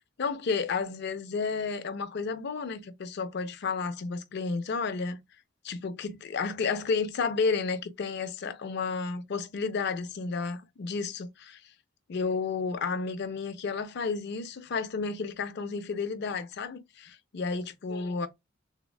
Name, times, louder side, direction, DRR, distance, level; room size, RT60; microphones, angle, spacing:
voice 1, 0.2-5.2 5.6-11.6 12.1-18.3, left 4 dB, 60° left, 0.4 m, -32 dB
3.5 x 2.1 x 2.2 m
head